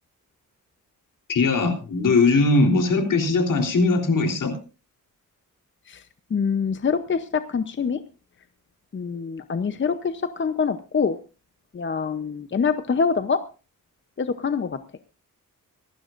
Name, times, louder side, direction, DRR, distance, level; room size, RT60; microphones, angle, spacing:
voice 1, 1.3-4.5, left 3 dB, 70° left, 4 dB, 3.6 m, -20 dB
voice 2, 6.3-8.0 8.9-11.2 11.7-13.4 14.2-14.8, left 5 dB, 35° left, 10 dB, 0.8 m, -25 dB
24.5 x 11.5 x 2.5 m, 0.33 s
wide cardioid pair, 125°, 33 cm